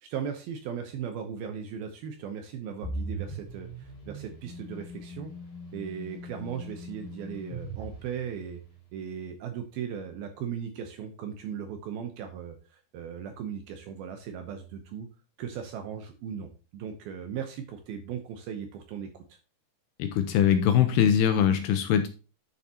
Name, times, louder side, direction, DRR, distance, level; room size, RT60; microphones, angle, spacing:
voice 1, 0.0-5.3 5.7-8.6 8.9-15.1 15.4-19.4, right 8 dB, 75° right, 6 dB, 2.3 m, -37 dB
sound 1, 2.8-8.8, right 1 dB, 35° left, 1.6 m, -40 dB
voice 2, 20.0-22.1, left 9 dB, 80° left, 8 dB, 2.5 m, -22 dB
9.7 x 6.9 x 2.9 m, 0.33 s
omnidirectional pair, 5.2 m